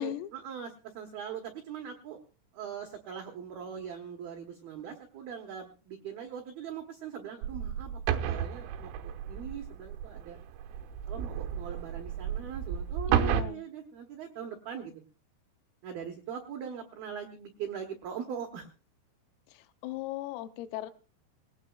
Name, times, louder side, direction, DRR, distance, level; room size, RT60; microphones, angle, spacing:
voice 1, 0.0-2.2 2.5-10.4 11.1-14.9 15.8-18.7, right 8 dB, 65° right, 3 dB, 2.6 m, -41 dB
sound 1, 7.4-13.4, right 9 dB, 85° right, 3.6 m, -32 dB
voice 2, 13.1-13.6 19.5-20.9, left 14 dB, 85° left, 10 dB, 3.5 m, -37 dB
22.0 x 18.0 x 2.4 m, 0.34 s
omnidirectional pair, 5.8 m